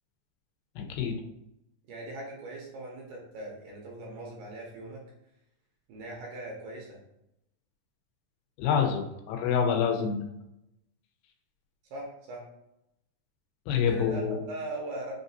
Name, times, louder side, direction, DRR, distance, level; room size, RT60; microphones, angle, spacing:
voice 1, 0.8-1.2 8.6-10.3 13.7-14.4, left 7 dB, 85° left, 4 dB, 2.3 m, -27 dB
voice 2, 1.9-5.0 5.9-7.0 11.9-12.4 13.9-15.1, right 2 dB, 75° right, -2 dB, 2.1 m, -40 dB
5.5 x 2.5 x 2.6 m, 0.85 s
omnidirectional pair, 4.0 m